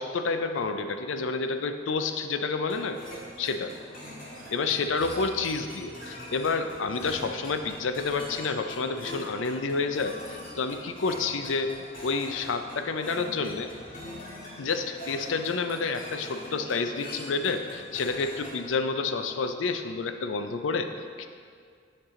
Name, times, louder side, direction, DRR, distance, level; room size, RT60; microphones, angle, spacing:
voice 1, 0.0-3.0 3.4-3.7 4.5-11.7 12.0-13.7 14.6-21.3, left 4 dB, 80° left, 7 dB, 0.5 m, -29 dB
sound 1, 2.7-18.7, left 1 dB, 50° left, 1.7 m, -43 dB
10.0 x 4.7 x 3.7 m, 2.1 s
head